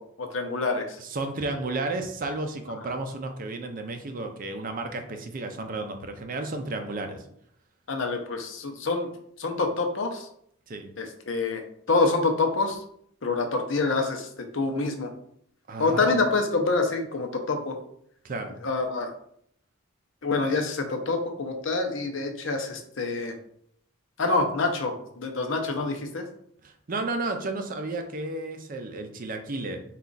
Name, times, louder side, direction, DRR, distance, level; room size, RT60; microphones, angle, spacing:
voice 1, 0.0-1.0 2.8-2.9 7.9-9.1 9.4-10.3 11.0-12.8 13.2-15.1 15.8-17.8 18.6-19.1 20.2-23.4 24.2-26.3, left 3 dB, 65° left, 4 dB, 0.7 m, -27 dB
voice 2, 1.0-7.2 10.7-10.9 15.7-16.1 18.2-18.6 26.6-29.8, right 2 dB, 40° right, 5 dB, 0.5 m, -32 dB
4.3 x 2.4 x 3.8 m, 0.67 s
head